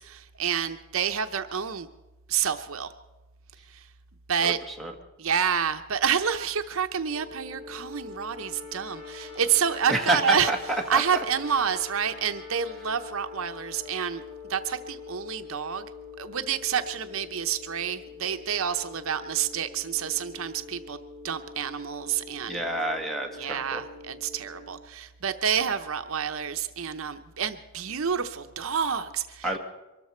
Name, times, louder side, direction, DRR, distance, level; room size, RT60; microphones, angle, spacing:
voice 1, 0.0-1.9 2.3-2.9 3.7-3.9 4.3-4.6 5.2-10.5 10.9-15.9 16.2-22.6 23.4-29.5, right 7 dB, 65° right, 8 dB, 0.7 m, -28 dB
sound 1, 7.0-24.7, left 5 dB, 30° left, 7.7 m, -44 dB
voice 2, 9.9-10.6 10.9-11.0 22.5-23.8 29.4-29.6, right 2 dB, ahead, 3 dB, 1.5 m, -27 dB
23.5 x 13.0 x 4.4 m, 1.0 s
head